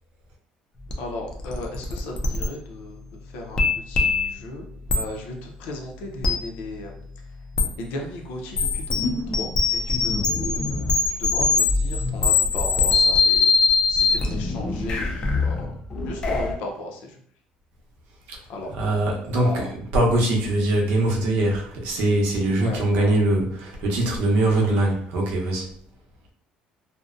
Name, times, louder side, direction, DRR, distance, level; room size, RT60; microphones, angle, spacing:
sound 1, 0.9-1.0 1.3-2.5 3.5-4.4 4.9-5.0 6.2-6.4 7.5-7.7 8.5-16.5, left 4 dB, 25° left, 0.3 m, -22 dB
voice 1, 1.0-4.7 4.9-6.9 7.8-9.1 9.4-13.5 13.9-15.7 16.1-17.2 18.5-18.7 19.3-19.7 22.6-23.2 24.5-24.7, left 2 dB, 80° left, 2 dB, 0.6 m, -36 dB
voice 2, 18.7-25.7, right 1 dB, 85° right, -1 dB, 0.7 m, -22 dB
2.5 x 2.1 x 2.4 m, 0.63 s
cardioid pair, 170°, 3 cm